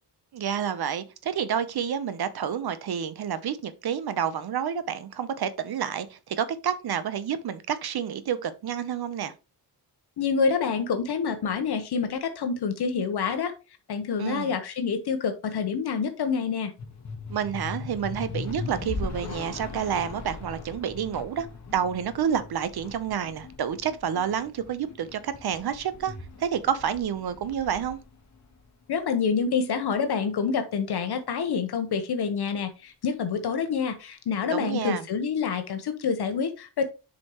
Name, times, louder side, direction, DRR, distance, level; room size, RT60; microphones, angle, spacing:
voice 1, 0.3-9.3 14.2-14.5 17.3-21.5 21.7-28.0 34.5-35.0, right 8 dB, 60° right, 0.8 m, -29 dB
voice 2, 10.2-13.5 13.9-16.7 28.9-36.8, left 6 dB, 60° left, 1.0 m, -27 dB
sound 1, 16.8-29.3, left 4 dB, 40° left, 1.5 m, -39 dB
7.2 x 5.1 x 3.0 m
cardioid pair, 115°, 43 cm